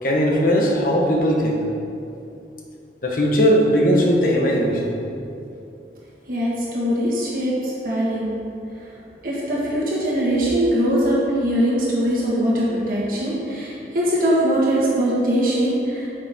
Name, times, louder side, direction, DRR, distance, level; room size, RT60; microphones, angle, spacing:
voice 1, 0.0-1.6 3.0-5.0, equal, 50° left, 0 dB, 1.2 m, -18 dB
voice 2, 6.3-8.3 9.2-16.2, equal, 50° right, -6 dB, 1.6 m, -21 dB
10.0 x 6.8 x 3.7 m, 2.7 s
head